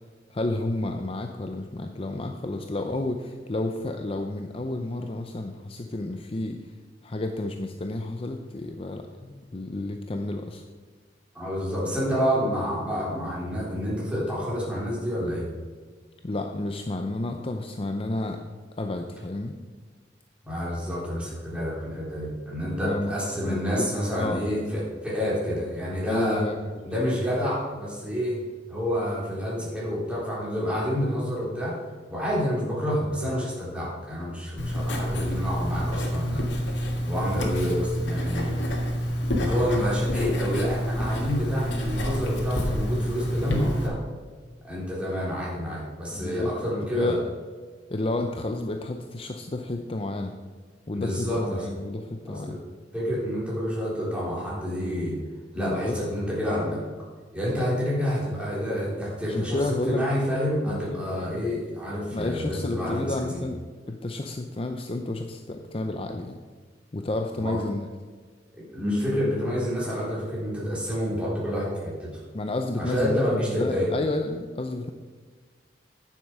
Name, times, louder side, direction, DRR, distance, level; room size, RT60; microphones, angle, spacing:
voice 1, 0.3-6.6 7.0-10.6 16.2-18.4 18.8-19.6 22.8-23.1 23.4-23.9 24.2-24.4 26.1-26.8 43.5-43.8 46.1-46.5 46.9-47.2 47.9-50.4 50.9-52.6 55.6-56.0 59.3-60.0 60.7-61.0 62.1-66.4 66.9-67.9 72.3-74.9, left 2 dB, 30° left, 5 dB, 0.5 m, -31 dB
voice 2, 11.3-15.5 20.4-26.5 26.8-28.4 28.7-31.8 32.1-36.5 37.0-38.6 39.3-44.0 44.6-47.2 50.9-51.7 52.3-52.6 52.9-55.2 55.5-56.9 57.3-63.4 67.3-67.6 68.5-72.2 72.8-73.9, equal, 5° right, -7 dB, 3.7 m, -28 dB
Writing, 34.6-43.9, equal, 85° left, 2.0 m, -28 dB
10.0 x 7.2 x 6.1 m, 1.5 s
head